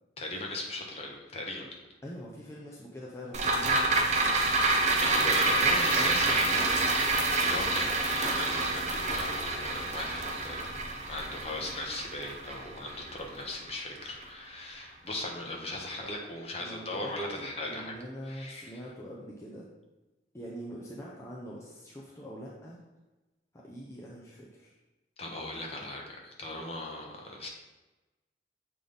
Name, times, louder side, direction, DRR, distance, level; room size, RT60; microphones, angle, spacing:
voice 1, 0.2-1.7 5.0-10.6 11.1-18.0 18.2-18.8 25.2-27.5, left 2 dB, 35° left, -1 dB, 1.1 m, -39 dB
voice 2, 2.0-4.6 5.5-6.6 16.6-19.7 20.3-22.8 23.5-24.7, equal, 15° left, -5 dB, 0.7 m, -43 dB
sound 1, 3.3-13.8 14.2-14.3, right 2 dB, 40° right, 0.7 m, -27 dB
7.4 x 3.5 x 3.9 m, 1.1 s
head